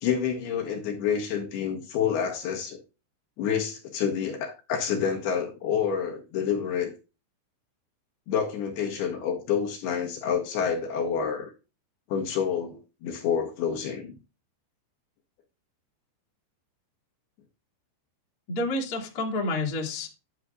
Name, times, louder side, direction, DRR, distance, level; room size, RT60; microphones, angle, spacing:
voice 1, 0.0-2.8 3.4-6.9 8.3-11.5 12.1-14.1, left 7 dB, 70° left, 3.0 m, -28 dB
voice 2, 18.5-20.1, left 2 dB, 35° left, 1.5 m, -29 dB
9.5 x 8.5 x 2.4 m
omnidirectional pair, 5.2 m